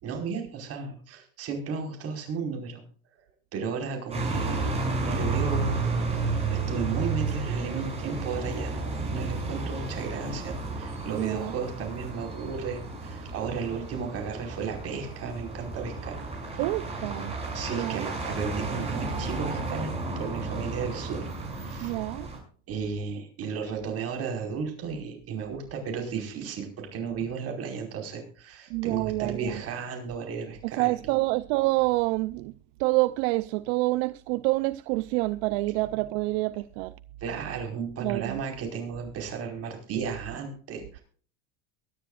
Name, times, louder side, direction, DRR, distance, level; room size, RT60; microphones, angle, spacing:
voice 1, 0.0-2.8 3.5-16.2 16.5-16.6 17.5-21.3 21.6-22.0 22.7-31.2 37.2-41.0, right 5 dB, 45° right, 5.1 m, -34 dB
sound 1, 4.1-22.4, right 3 dB, 20° right, 6.3 m, -32 dB
voice 2, 11.1-11.5 16.6-17.3 17.7-18.1 21.8-22.3 28.7-29.6 30.6-32.5 32.8-36.9 38.0-38.4, right 21 dB, 70° right, 0.6 m, -27 dB
23.5 x 10.0 x 2.5 m
supercardioid pair, 120°, 35 cm